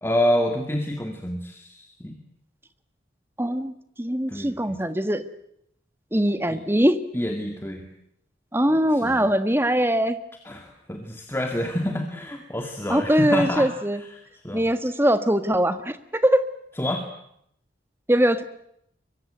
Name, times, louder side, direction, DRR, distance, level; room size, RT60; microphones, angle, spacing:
voice 1, 0.0-2.2 4.3-4.8 6.5-6.6 7.1-7.9 8.7-9.3 10.4-13.7 14.0-14.1 14.4-14.6 16.8-17.1, left 1 dB, 15° left, 4 dB, 2.1 m, -28 dB
voice 2, 3.4-3.7 4.0-5.2 6.1-7.0 8.5-10.2 12.9-14.0 14.5-16.4 18.1-18.4, equal, 15° right, 10 dB, 1.5 m, -21 dB
23.5 x 23.5 x 9.1 m, 0.74 s
head